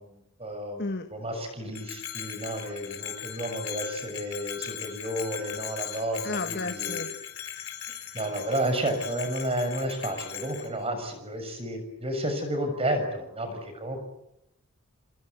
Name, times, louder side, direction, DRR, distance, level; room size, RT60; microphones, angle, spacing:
voice 1, 0.0-0.9 1.1-7.0 7.9-14.0, right 1 dB, 25° right, 7 dB, 6.5 m, -31 dB
voice 2, 0.8-1.1 6.2-7.1, left 2 dB, 50° left, 6 dB, 1.7 m, -32 dB
Bell, 1.7-10.7, left 10 dB, 70° left, 4.6 m, -38 dB
27.0 x 26.5 x 8.4 m, 0.83 s
head